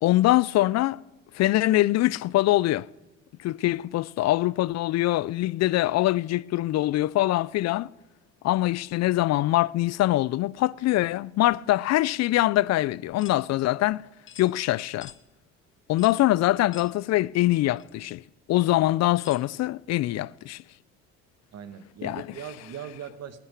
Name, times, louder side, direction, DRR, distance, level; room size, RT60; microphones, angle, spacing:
voice 1, 0.0-1.0 1.3-2.9 3.4-7.9 8.4-14.0 14.4-15.1 15.9-18.2 18.5-20.6 22.0-22.3, left 16 dB, 60° left, 0.4 m, -23 dB
sound 1, 13.2-13.4 14.3-14.5 15.0-15.2 16.0-16.2 16.7-16.9 17.8-17.9 19.2-19.5, left 8 dB, 40° left, 1.2 m, -45 dB
voice 2, 21.5-23.4, right 8 dB, 55° right, 1.4 m, -40 dB
15.0 x 8.9 x 9.6 m
supercardioid pair, 75°, 30 cm